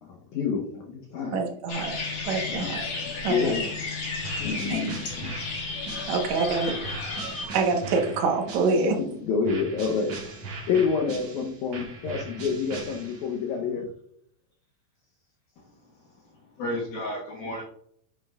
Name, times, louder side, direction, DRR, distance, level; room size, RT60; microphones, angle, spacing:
voice 1, 0.0-1.4 2.5-2.8 3.1-4.0 4.4-5.3 8.8-10.1 10.4-13.8, left 5 dB, 85° left, 1 dB, 1.7 m, -28 dB
voice 2, 1.3-2.0 2.2-2.9 3.2-3.6 4.7-4.8 6.1-6.7 7.2-9.0, right 4 dB, 65° right, 2 dB, 1.9 m, -26 dB
sound 1, 1.7-7.5, left 3 dB, 50° left, 2.6 m, -33 dB
sound 2, 4.2-9.0 9.4-13.4, right 3 dB, 50° right, 2.1 m, -40 dB
voice 3, 15.6-16.0 16.2-17.6, left 1 dB, 70° left, -4 dB, 3.1 m, -34 dB
9.4 x 6.6 x 2.4 m, 0.67 s
omnidirectional pair, 4.7 m